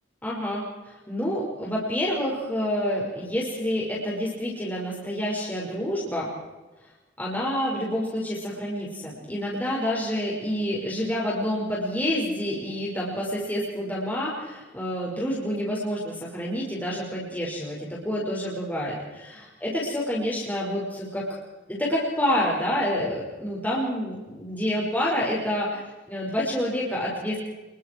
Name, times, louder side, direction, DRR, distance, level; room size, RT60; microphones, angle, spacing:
voice 1, 0.2-6.3 7.2-21.4 21.7-25.8 26.1-27.4, equal, 10° left, -5 dB, 5.5 m, -28 dB
29.0 x 22.0 x 4.7 m, 1.1 s
head